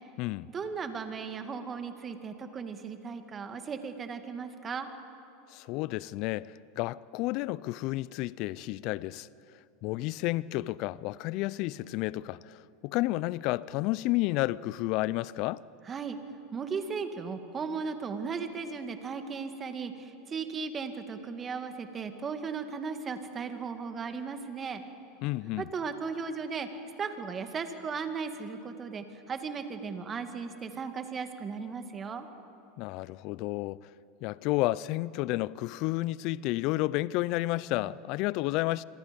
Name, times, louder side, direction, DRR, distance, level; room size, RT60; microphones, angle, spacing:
voice 1, 0.5-4.9 15.9-16.2 16.5-24.8 25.6-26.7 27.0-32.3, right 5 dB, 30° right, 2.2 m, -36 dB
voice 2, 5.5-9.3 9.8-15.6 25.2-25.7 32.8-33.9 34.2-38.8, left 18 dB, 55° left, 0.5 m, -31 dB
26.5 x 26.0 x 5.4 m
hypercardioid pair, 95°, 0 cm